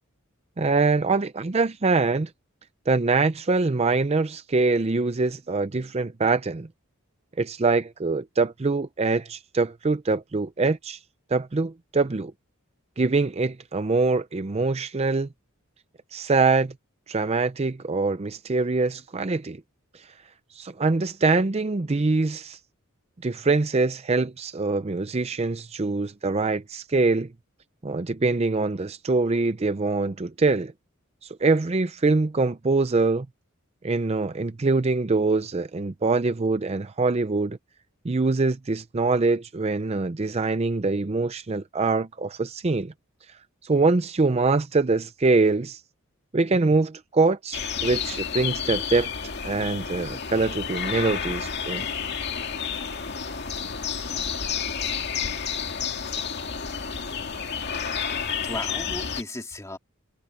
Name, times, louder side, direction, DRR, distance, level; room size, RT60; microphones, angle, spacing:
voice 1, 0.6-2.3 2.9-6.7 7.4-11.0 11.3-12.3 13.0-15.3 16.1-16.7 17.1-19.6 20.6-22.6 23.2-27.3 27.8-30.7 31.2-33.3 33.8-37.6 38.0-42.9 43.6-45.8 46.3-49.1 49.4-51.8, right 3 dB, 30° right, 0.5 m, -24 dB
sound 1, 47.5-59.2, left 7 dB, 55° left, 2.2 m, -30 dB
voice 2, 58.5-59.8, left 1 dB, 15° left, 2.0 m, -36 dB
head